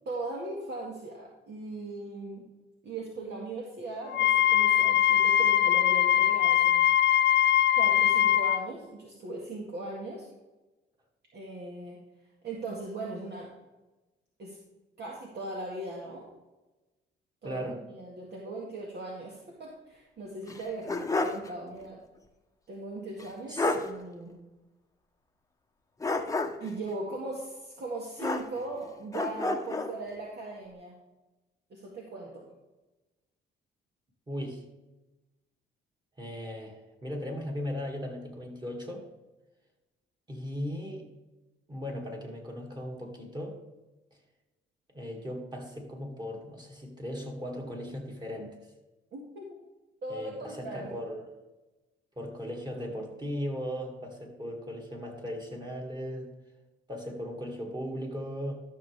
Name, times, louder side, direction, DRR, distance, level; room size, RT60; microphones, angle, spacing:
voice 1, 0.1-2.4 2.8-6.9 7.1-7.2 7.7-10.3 11.3-12.0 12.4-13.5 14.4-14.6 15.0-16.3 17.4-22.0 22.7-24.4 26.6-31.0 31.7-32.5 49.1-49.6 50.0-50.9, right 2 dB, 60° right, -2 dB, 2.0 m, -39 dB
Wind instrument woodwind instrument, 4.1-8.6, left 10 dB, 65° left, 0.5 m, -22 dB
voice 2, 17.4-17.8 23.5-23.7 34.3-34.6 36.2-39.0 40.3-41.1 41.7-43.6 44.9-48.5 50.1-51.2 52.2-56.3 56.9-58.5, equal, 20° right, 0 dB, 2.5 m, -37 dB
sound 1, 20.5-21.5 21.8-21.9 23.2-23.3 23.6-23.9 26.0-26.7 28.2-28.8 29.1-29.9, left 2 dB, 15° left, 0.9 m, -30 dB
13.0 x 6.3 x 3.6 m, 1.1 s
cardioid pair, 90°, 20 cm